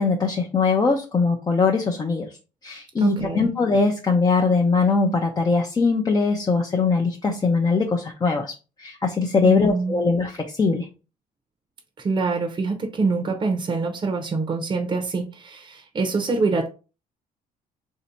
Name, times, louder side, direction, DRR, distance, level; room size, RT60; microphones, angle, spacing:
voice 1, 0.0-2.4 2.6-8.5 8.8-10.9, left 4 dB, 25° left, 0.6 m, -21 dB
voice 2, 3.0-3.5 9.4-10.0 12.0-16.7, right 4 dB, 25° right, 0.7 m, -25 dB
3.1 x 2.8 x 4.3 m
cardioid pair, 110°, 17 cm